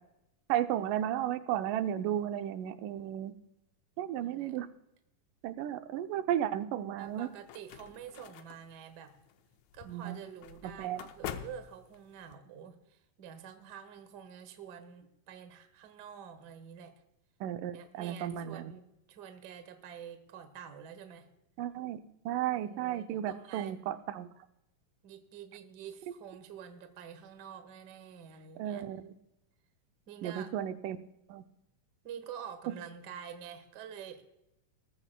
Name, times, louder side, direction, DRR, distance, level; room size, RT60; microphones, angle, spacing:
voice 1, 0.5-3.3 4.0-4.7 5.4-7.3 9.9-10.2 10.8-11.0 17.4-18.7 21.6-22.0 22.3-24.3 28.6-29.1 30.2-31.0 31.3-31.4 32.7-32.8, right 11 dB, 80° right, 9 dB, 2.2 m, -34 dB
voice 2, 4.2-4.6 7.0-9.1 9.7-16.9 17.7-21.3 22.5-23.8 25.0-28.8 30.1-30.5 32.0-34.2, right 8 dB, 60° right, 8 dB, 1.1 m, -48 dB
sound 1, 7.0-12.4, left 9 dB, 75° left, 1.8 m, -47 dB
20.0 x 14.0 x 2.2 m, 0.87 s
omnidirectional pair, 3.8 m